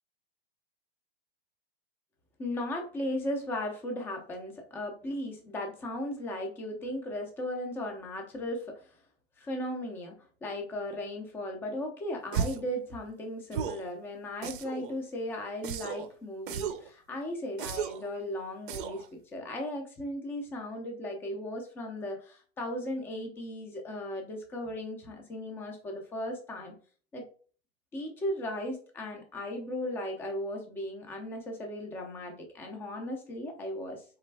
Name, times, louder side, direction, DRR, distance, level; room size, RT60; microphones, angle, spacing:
voice 1, 2.4-9.0 9.4-26.8 27.1-27.3 27.9-34.0, left 1 dB, 5° left, 2 dB, 0.4 m, -36 dB
sound 1, 12.3-12.7 13.5-13.9 14.4-14.9 15.6-16.1 16.5-16.9 17.6-18.1 18.7-19.1, right 8 dB, 55° right, 0.5 m, -34 dB
4.2 x 3.3 x 3.3 m, 0.42 s
supercardioid pair, 160°, 31 cm